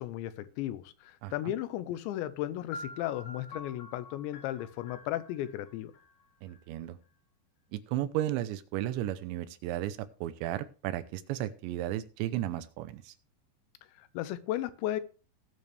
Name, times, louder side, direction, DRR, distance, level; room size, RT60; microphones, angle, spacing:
voice 1, 0.0-5.9 13.9-15.0, left 13 dB, 90° left, 14 dB, 3.0 m, -35 dB
voice 2, 1.2-1.5 6.4-7.0 7.7-13.1, right 13 dB, 85° right, 12 dB, 3.1 m, -34 dB
sound 1, 2.7-6.6, left 2 dB, 65° left, 2.9 m, -47 dB
19.0 x 6.7 x 3.3 m, 0.35 s
omnidirectional pair, 5.1 m